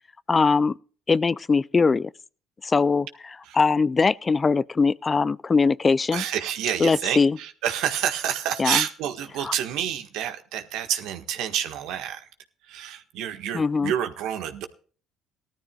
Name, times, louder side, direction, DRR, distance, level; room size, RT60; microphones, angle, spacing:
voice 1, 0.3-0.8 1.1-2.1 2.6-3.1 3.5-6.2 6.8-7.4 8.6-8.8 9.4-9.5 13.5-13.9, left 4 dB, 30° left, 0.4 m, -21 dB
voice 2, 6.1-12.3 12.7-14.7, right 10 dB, 75° right, 1.6 m, -28 dB
19.0 x 13.0 x 2.4 m
supercardioid pair, 65°, 0 cm